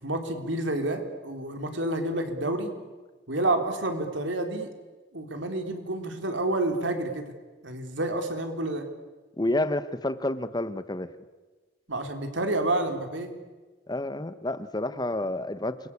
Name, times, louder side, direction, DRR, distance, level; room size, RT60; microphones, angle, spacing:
voice 1, 0.0-2.7 3.3-4.7 5.1-7.3 7.6-8.9 11.9-13.3, right 2 dB, 90° right, 6 dB, 3.9 m, -29 dB
voice 2, 9.4-11.1 13.9-15.9, left 1 dB, 20° left, 13 dB, 1.1 m, -29 dB
29.0 x 22.5 x 8.6 m, 1.3 s
head